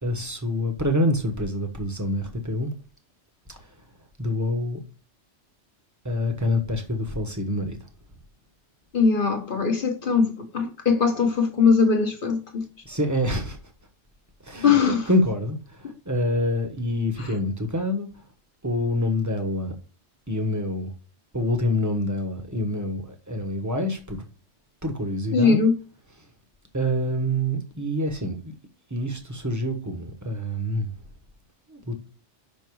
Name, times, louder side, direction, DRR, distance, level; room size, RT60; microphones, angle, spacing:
voice 1, 0.0-2.7 3.5-3.7 4.2-4.8 6.0-7.8 12.8-13.6 14.4-18.1 18.6-19.8 20.3-20.9 21.3-24.2 24.8-25.6 26.7-28.5 28.9-30.9 31.7-31.9, left 1 dB, 15° right, 1.1 m, -26 dB
voice 2, 8.9-12.6 14.6-15.1 17.2-17.3 25.3-25.7, left 5 dB, 50° left, 1.2 m, -21 dB
5.8 x 5.4 x 4.6 m
omnidirectional pair, 1.2 m